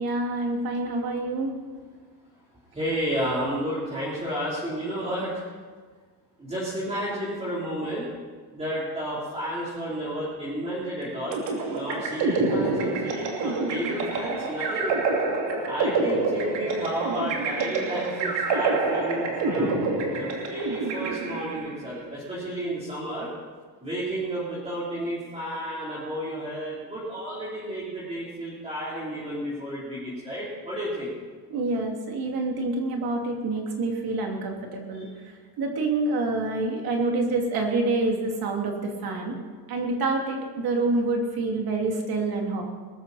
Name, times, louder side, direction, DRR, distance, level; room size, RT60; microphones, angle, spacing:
voice 1, 0.0-1.5 31.5-35.1 35.6-39.4 39.7-42.6, right 2 dB, 60° right, 1 dB, 2.9 m, -27 dB
voice 2, 2.7-5.4 6.4-8.1 8.5-11.4 11.7-14.9 15.6-19.8 20.1-23.3 23.8-31.1 34.9-35.1, equal, 15° right, -9 dB, 3.7 m, -32 dB
sound 1, 11.3-21.7, right 3 dB, 85° right, 2.9 m, -27 dB
21.5 x 13.0 x 4.2 m, 1.5 s
cardioid pair, 170°, 41 cm